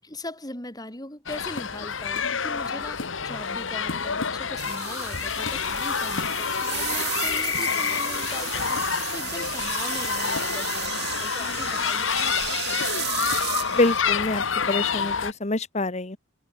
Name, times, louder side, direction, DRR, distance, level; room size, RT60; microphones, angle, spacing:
voice 1, 0.0-12.9, left 1 dB, 20° left, 6.2 m, -40 dB
sound 1, 1.3-15.3, left 6 dB, 75° left, 1.5 m, -28 dB
sound 2, 4.6-14.0, right 14 dB, 55° right, 6.3 m, -34 dB
voice 2, 13.7-16.2, left 2 dB, 35° left, 1.3 m, -26 dB
head